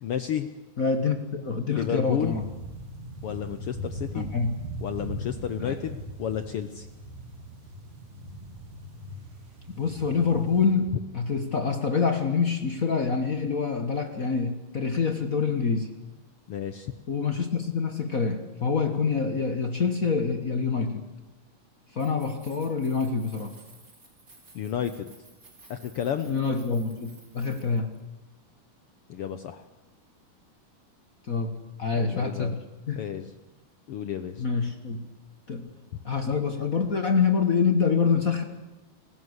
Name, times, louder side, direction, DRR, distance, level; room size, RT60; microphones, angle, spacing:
voice 1, 0.0-0.5 1.7-2.4 3.2-4.3 4.8-6.9 16.5-16.9 24.5-25.1 25.7-26.3 29.1-29.6 32.0-32.5 33.0-33.3 33.9-34.4, left 9 dB, 85° left, 10 dB, 1.2 m, -31 dB
voice 2, 0.8-2.4 4.1-4.6 5.6-5.8 9.8-15.9 17.1-21.0 21.9-23.5 26.2-28.0 31.3-31.5 31.8-33.0 34.4-35.1 35.5-35.7 36.0-38.4, left 5 dB, 60° left, 6 dB, 0.9 m, -26 dB
sound 1, 2.2-10.7, right 1 dB, 50° right, 4.9 m, -40 dB
Keys jangling, 21.9-28.0, right 3 dB, 25° right, 3.8 m, -55 dB
29.0 x 16.5 x 8.1 m, 1.0 s
omnidirectional pair, 3.8 m